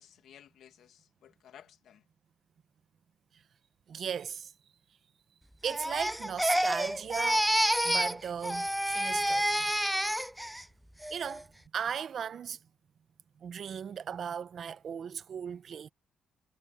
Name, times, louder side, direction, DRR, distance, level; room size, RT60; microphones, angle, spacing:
voice 1, 0.0-2.1, left 10 dB, 70° left, 2.3 m, -56 dB
voice 2, 3.9-4.5 5.6-7.5 7.8-9.7 11.1-11.5 11.7-12.6 13.4-15.9, right 7 dB, 55° right, 1.0 m, -37 dB
Crying sobbing, 5.6-8.2 8.4-10.6 11.0-11.4, equal, ahead, 0.3 m, -29 dB
cardioid pair, 90°, 0 cm